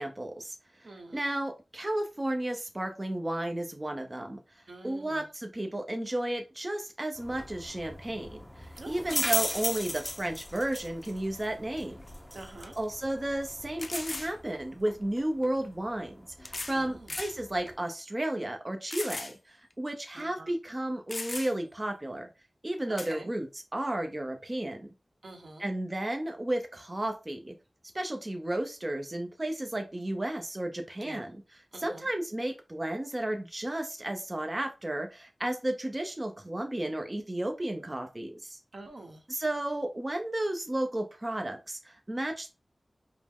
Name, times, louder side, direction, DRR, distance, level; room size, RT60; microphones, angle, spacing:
voice 1, 0.0-12.1 12.8-16.1 16.4-22.3 22.6-23.5 23.7-24.9 25.6-27.5 27.9-31.3 31.8-38.6 39.3-42.5, right 1 dB, 30° right, 0.6 m, -33 dB
voice 2, 0.8-1.2 4.7-5.3 8.8-9.1 12.3-12.8 16.7-17.1 20.1-20.5 22.9-23.3 25.2-25.7 31.0-31.2 31.7-32.1 38.7-39.2, right 2 dB, 75° right, 0.9 m, -46 dB
sound 1, 7.1-17.8, left 1 dB, 20° left, 1.4 m, -38 dB
sound 2, 12.0-12.1 12.6-12.7 13.8-14.3 15.5-15.6 16.4-16.8 17.1-17.4 17.9-18.0 18.9-19.4 19.7-19.8 20.7-20.8 21.1-21.7 23.0-23.1, left 2 dB, 45° left, 0.4 m, -37 dB
5.0 x 2.0 x 3.6 m
wide cardioid pair, 85°, 0 cm